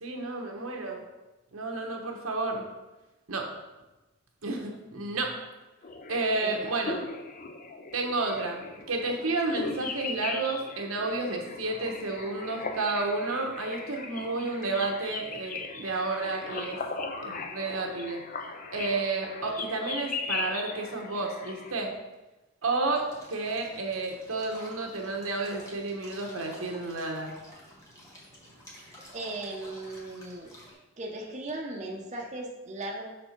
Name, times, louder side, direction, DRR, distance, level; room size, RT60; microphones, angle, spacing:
voice 1, 0.0-1.0 1.5-2.7 3.3-3.5 4.4-5.3 6.1-7.0 7.9-16.8 17.2-18.2 18.7-21.9 22.6-23.0 23.3-27.3, right 3 dB, 85° right, 2 dB, 1.1 m, -31 dB
sound 1, 5.8-21.7, left 4 dB, 40° left, 0.5 m, -38 dB
voice 2, 6.4-6.7 29.1-30.5 31.0-33.1, right 2 dB, 35° right, 0 dB, 0.7 m, -37 dB
sound 2, 22.9-30.7, equal, 15° left, 1.5 m, -50 dB
6.0 x 4.4 x 4.4 m, 1.1 s
head